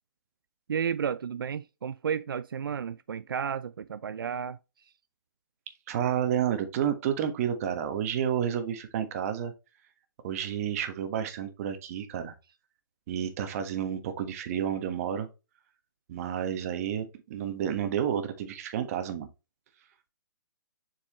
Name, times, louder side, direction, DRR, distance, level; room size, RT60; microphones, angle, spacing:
voice 1, 0.7-4.6, right 7 dB, 85° right, 0.4 m, -32 dB
voice 2, 5.9-9.5 10.2-12.3 13.1-15.3 16.1-19.3, right 9 dB, 45° right, 1.3 m, -30 dB
7.3 x 4.7 x 3.1 m
hypercardioid pair, 140°, 11 cm